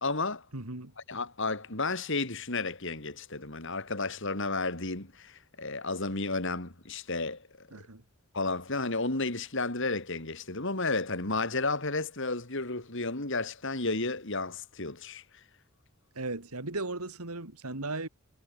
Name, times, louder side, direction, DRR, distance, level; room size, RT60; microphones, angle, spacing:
voice 1, 0.0-0.4 1.1-7.7 8.3-15.2, left 3 dB, 55° left, 3.2 m, -32 dB
voice 2, 0.5-0.9 7.7-8.0 16.1-18.1, right 2 dB, 90° right, 3.0 m, -36 dB
head